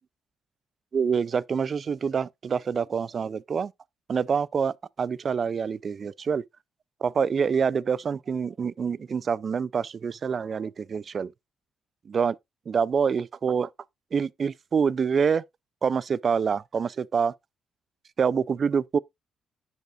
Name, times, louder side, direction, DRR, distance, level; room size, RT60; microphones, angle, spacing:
voice 1, 0.9-3.7 4.1-6.4 7.0-11.3 12.1-12.4 12.7-13.7 14.1-15.4 15.8-17.3 18.2-19.0, right 6 dB, 45° right, 0.3 m, -26 dB
10.5 x 5.5 x 2.4 m
cardioid pair, 90°, 0 cm